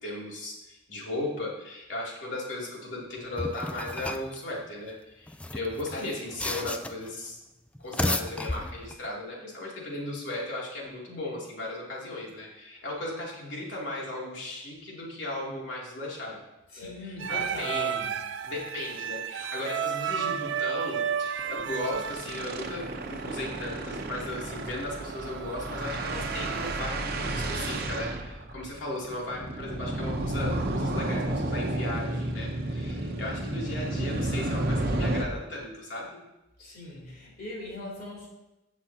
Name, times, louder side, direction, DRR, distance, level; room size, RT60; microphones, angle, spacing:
voice 1, 0.0-7.4 7.8-16.4 16.8-17.9 18.4-36.2, left 2 dB, 80° left, -4 dB, 2.8 m, -36 dB
sound 1, 3.4-4.4 5.3-7.1 7.8-9.1, left 1 dB, 5° left, 0.3 m, -33 dB
voice 2, 16.7-18.1 36.6-38.3, left 1 dB, 55° left, -4 dB, 3.4 m, -40 dB
sound 2, 17.2-26.8, right 8 dB, 75° right, 0.5 m, -34 dB
sound 3, 18.6-18.7 19.0-19.1 19.4-19.6 19.9-20.1 21.4-35.2, right 1 dB, 55° right, 0.8 m, -32 dB
16.0 x 6.1 x 2.8 m, 0.97 s
head